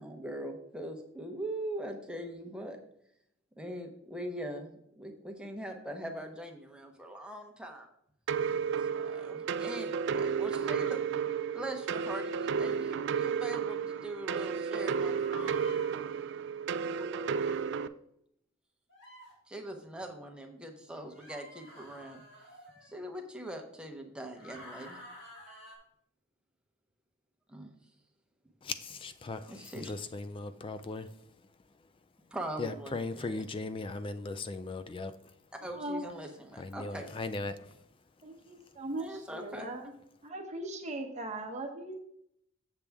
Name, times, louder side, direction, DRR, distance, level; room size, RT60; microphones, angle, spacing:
voice 1, 0.0-2.8 3.6-7.9 8.8-11.0 11.5-15.6 16.9-17.5 19.5-22.2 22.8-25.0 27.5-27.7 29.5-29.9 32.3-33.4 35.5-37.1 39.0-39.7 40.3-40.4, right 1 dB, 5° right, 2 dB, 0.9 m, -42 dB
sound 1, 8.3-17.9, right 6 dB, 60° right, 0.3 m, -32 dB
sound 2, 15.1-15.9 17.3-17.6 18.9-19.3 21.1-23.0 24.3-25.8, left 1 dB, 60° left, 2.6 m, -50 dB
voice 2, 28.6-31.1 32.6-35.1 36.6-37.8, left 3 dB, 25° left, 11 dB, 0.3 m, -38 dB
voice 3, 35.7-36.0 38.2-39.9 40.2-41.9, right 1 dB, 35° right, 2 dB, 0.9 m, -39 dB
7.3 x 6.8 x 3.5 m, 0.73 s
head